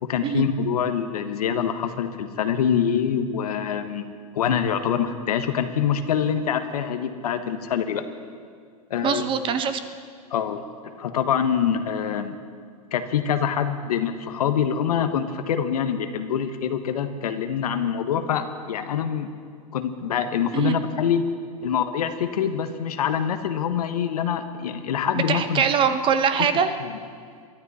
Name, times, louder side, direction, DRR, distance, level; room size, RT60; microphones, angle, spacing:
voice 1, 0.0-4.0 4.3-8.0 8.9-9.3 10.3-10.6 11.0-12.3 12.9-19.3 19.7-21.3 21.6-25.6 26.4-26.5 26.8-26.9, left 8 dB, 75° left, 9 dB, 1.2 m, -25 dB
voice 2, 9.0-9.8 20.5-20.8 25.1-26.7, right 7 dB, 25° right, 10 dB, 0.9 m, -22 dB
23.5 x 12.0 x 4.2 m, 2.1 s
hypercardioid pair, 125°, 20 cm